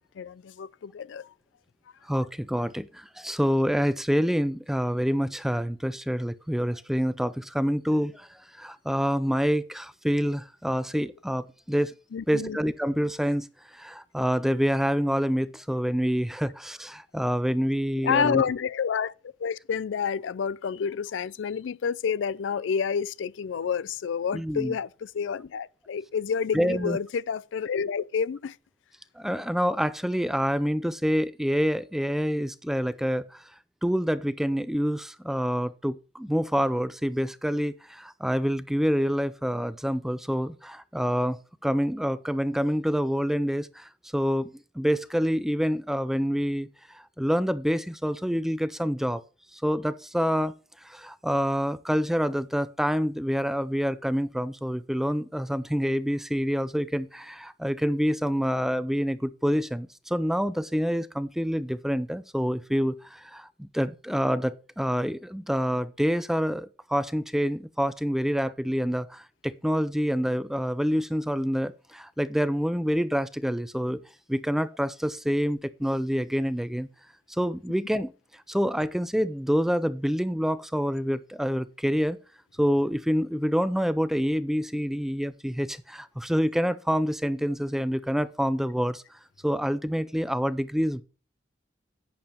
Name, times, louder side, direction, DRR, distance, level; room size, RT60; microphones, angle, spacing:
voice 1, 0.0-1.3 12.1-12.6 18.0-19.1 19.4-28.6, left 6 dB, 90° left, 0.4 m, -29 dB
voice 2, 2.0-11.9 12.3-18.4 24.3-24.7 26.5-27.0 29.2-33.5 33.8-49.2 49.5-74.0 74.3-76.9 77.3-82.2 82.6-89.0 89.4-91.0, equal, ahead, 0.4 m, -27 dB
11.0 x 8.8 x 3.0 m
head